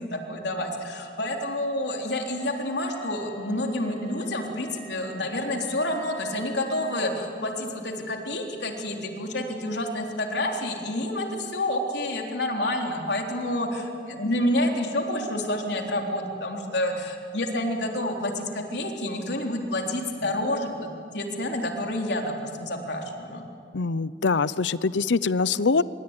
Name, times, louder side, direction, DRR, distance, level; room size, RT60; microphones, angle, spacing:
voice 1, 0.0-23.4, left 1 dB, 70° left, 2 dB, 3.7 m, -29 dB
sound 1, 1.8-7.0, equal, 15° left, 6.6 m, -45 dB
voice 2, 23.7-25.8, left 4 dB, 85° left, 18 dB, 0.7 m, -23 dB
25.5 x 23.5 x 9.8 m, 2.4 s
head